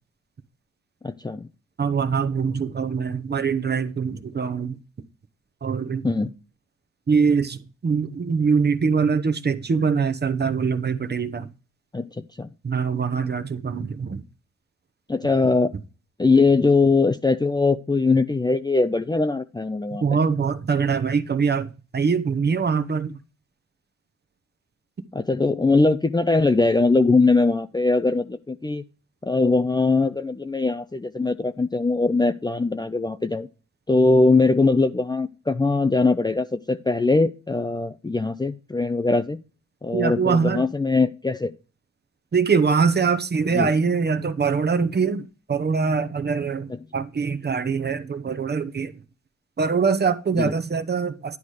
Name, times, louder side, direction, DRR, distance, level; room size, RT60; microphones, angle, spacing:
voice 1, 1.0-1.5 6.0-6.3 11.9-12.5 15.1-15.7 16.2-20.0 25.1-28.8 29.2-33.5 33.9-39.4 39.8-41.5 43.5-43.7 46.7-46.8 50.4-50.5, left 3 dB, 15° left, 0.6 m, -21 dB
voice 2, 1.8-4.8 5.6-6.1 7.1-11.5 12.6-14.2 20.0-23.2 39.9-40.6 42.3-48.9 49.6-51.4, right 5 dB, 35° right, 1.0 m, -23 dB
11.0 x 4.0 x 4.8 m
cardioid pair, 95°, 29 cm